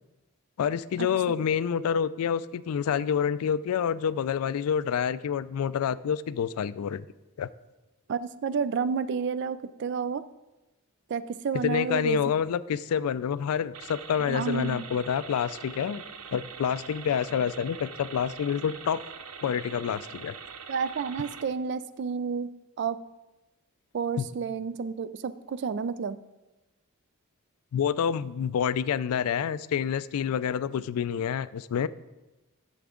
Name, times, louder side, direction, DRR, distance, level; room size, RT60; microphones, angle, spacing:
voice 1, 0.6-7.1 7.4-7.5 11.6-16.0 16.3-19.0 19.4-20.3 24.2-24.3 27.7-31.9, left 7 dB, 80° left, 16 dB, 0.3 m, -28 dB
voice 2, 8.1-10.2 11.1-12.2 14.2-14.8 20.7-22.5 22.8-23.0 23.9-26.2, right 6 dB, 50° right, 15 dB, 0.3 m, -30 dB
sound 1, 13.7-21.4, right 6 dB, 80° right, 0.7 m, -43 dB
10.0 x 7.0 x 3.7 m, 1.1 s
head